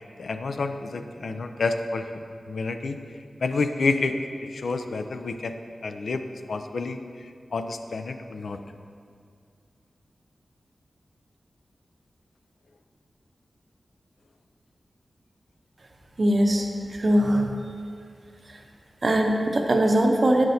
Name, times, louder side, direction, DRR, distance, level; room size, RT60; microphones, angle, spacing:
voice 1, 0.2-2.1 2.5-3.0 3.4-8.6, left 3 dB, 80° left, 7 dB, 0.3 m, -29 dB
voice 2, 16.2-16.7 17.0-17.6 19.0-20.5, right 1 dB, 50° right, 3 dB, 0.7 m, -21 dB
8.5 x 5.9 x 2.7 m, 2.2 s
cardioid pair, 55°, 0 cm